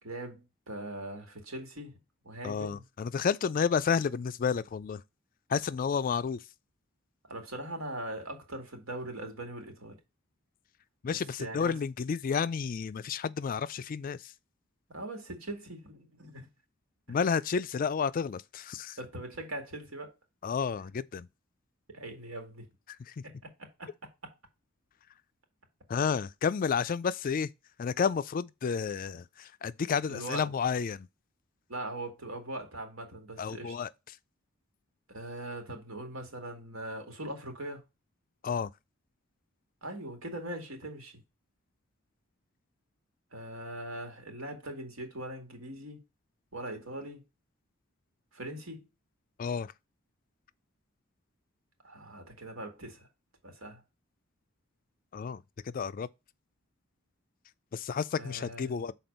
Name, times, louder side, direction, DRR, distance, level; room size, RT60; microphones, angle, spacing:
voice 1, 0.0-2.0 2.2-2.8 7.3-10.0 11.1-11.8 14.9-16.5 17.1-17.2 19.0-20.1 21.9-22.7 23.2-23.5 23.8-23.9 24.2-24.3 30.0-30.5 31.7-33.7 35.1-37.8 39.8-41.2 43.3-46.0 46.5-47.2 48.3-48.9 51.8-53.1 53.4-53.8 58.2-58.8, right 1 dB, 80° right, 2.1 m, -41 dB
voice 2, 2.4-5.0 5.5-6.4 11.0-14.3 17.1-19.0 20.4-21.3 23.1-23.2 25.9-27.5 27.8-31.1 33.4-33.9 38.4-38.7 49.4-49.7 55.1-56.1 57.7-58.9, left 6 dB, 40° left, 0.3 m, -31 dB
6.0 x 4.2 x 5.2 m
head